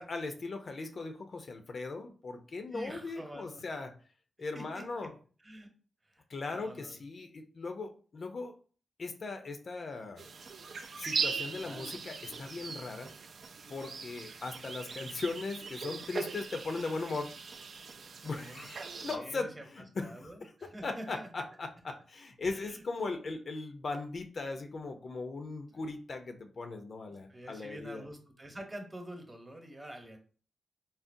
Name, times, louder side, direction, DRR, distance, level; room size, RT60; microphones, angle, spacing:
voice 1, 0.0-3.9 4.4-5.1 6.3-8.5 9.0-10.2 11.0-13.1 13.7-17.3 18.2-28.0, left 3 dB, 60° left, 6 dB, 0.5 m, -39 dB
voice 2, 2.7-3.6 4.5-4.8 5.4-5.7 6.0-7.0 11.4-11.9 18.2-18.7 19.0-21.3 22.5-22.8 25.7-25.9 27.1-30.2, right 1 dB, 25° right, 4 dB, 0.9 m, -47 dB
sound 1, 10.2-19.2, right 5 dB, 65° right, 0.3 m, -40 dB
3.8 x 2.0 x 2.5 m, 0.40 s
cardioid pair, 50°, 0 cm